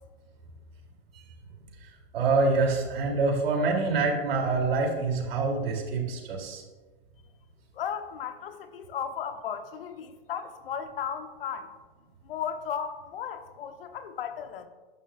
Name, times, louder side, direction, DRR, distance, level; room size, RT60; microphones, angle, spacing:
voice 1, 1.8-6.6, right 3 dB, 70° right, 0 dB, 3.4 m, -26 dB
voice 2, 7.7-11.7 12.2-14.7, left 8 dB, 65° left, 8 dB, 1.2 m, -35 dB
13.5 x 11.0 x 2.6 m, 1.3 s
hypercardioid pair, 150°, 30 cm